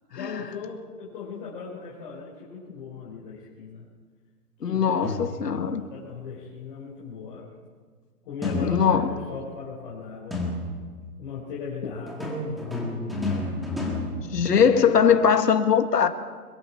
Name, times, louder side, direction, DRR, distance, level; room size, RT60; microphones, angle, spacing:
voice 1, 0.1-3.9 4.6-7.5 8.2-10.4 11.2-12.8 14.3-14.7, left 5 dB, 30° left, 4.7 m, -38 dB
voice 2, 4.6-5.8 8.6-9.1 14.3-16.1, left 7 dB, 80° left, 2.0 m, -20 dB
sound 1, 5.0-5.7 8.4-9.3 10.3-11.0 12.1-15.0, left 1 dB, ahead, 1.7 m, -31 dB
22.0 x 22.0 x 5.8 m
hypercardioid pair, 155°, 47 cm